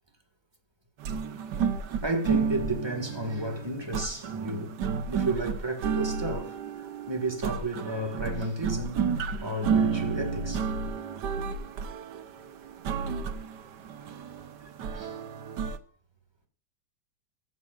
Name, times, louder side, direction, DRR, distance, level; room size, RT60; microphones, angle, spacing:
sound 1, 1.0-15.8, right 6 dB, 65° right, 1.6 m, -31 dB
voice 1, 2.0-4.7 5.1-6.6 7.1-9.1 9.4-10.7 14.9-15.2, right 1 dB, 15° right, 2.0 m, -32 dB
17.0 x 15.0 x 2.6 m
omnidirectional pair, 2.0 m